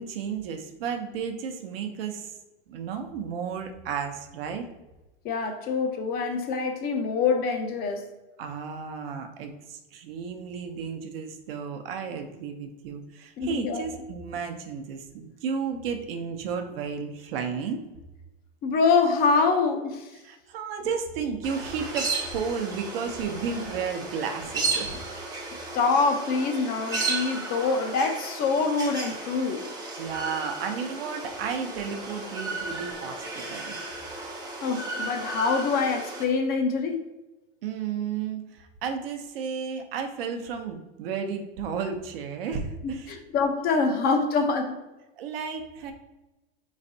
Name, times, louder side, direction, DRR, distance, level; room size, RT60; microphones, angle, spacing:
voice 1, 0.0-2.4 2.7-4.6 8.4-17.8 20.2-25.3 30.0-33.8 37.6-43.1 45.2-45.9, right 6 dB, 70° right, 0.7 m, -33 dB
voice 2, 5.2-8.1 13.4-13.8 18.6-20.1 25.7-29.6 34.6-37.0 42.8-44.8, left 4 dB, 30° left, 0.5 m, -25 dB
sound 1, 21.4-36.2, right 3 dB, 15° right, 0.7 m, -34 dB
4.2 x 3.2 x 2.7 m
hypercardioid pair, 120°, 30 cm